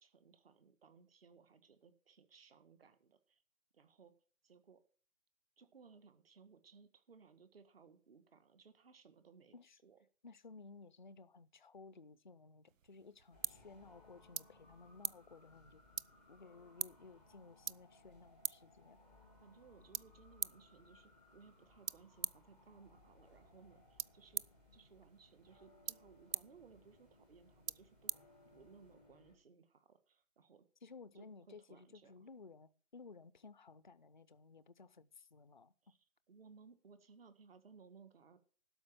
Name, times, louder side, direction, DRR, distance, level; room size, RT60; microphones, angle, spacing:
voice 1, 0.0-3.4 3.7-4.1 4.4-4.8 5.6-9.6 9.8-10.0 19.4-24.4 24.7-28.1 28.5-30.6 31.1-32.1 35.8-36.0 36.3-38.4, right 5 dB, 45° right, 1.7 m, -62 dB
voice 2, 10.2-15.8 16.3-19.0 30.8-35.7, left 4 dB, 35° left, 0.4 m, -57 dB
sound 1, 12.7-28.9, right 9 dB, 70° right, 0.5 m, -48 dB
sound 2, 13.3-29.4, left 2 dB, 5° right, 0.7 m, -65 dB
12.5 x 5.1 x 8.7 m
figure-of-eight pair, 150°, 41 cm